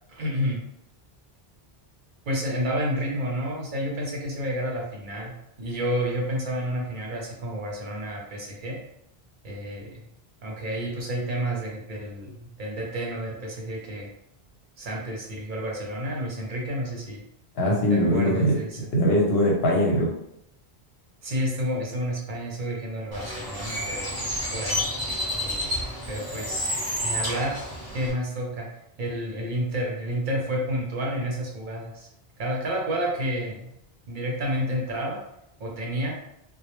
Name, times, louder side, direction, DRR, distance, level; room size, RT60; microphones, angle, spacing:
voice 1, 0.1-0.6 2.3-5.3 5.6-8.8 9.4-10.1 10.4-14.1 14.8-17.2 17.9-18.8 21.2-24.9 25.3-26.8 27.0-27.6 27.9-28.7 29.0-32.1 32.4-33.7 34.1-35.2 35.6-36.1, equal, 60° right, -2 dB, 0.6 m, -30 dB
voice 2, 17.6-18.5 18.9-20.1, equal, 75° left, -2 dB, 0.9 m, -21 dB
Bird, 23.1-28.1, equal, 20° right, 0.7 m, -30 dB
2.1 x 2.0 x 2.9 m, 0.80 s
omnidirectional pair, 1.0 m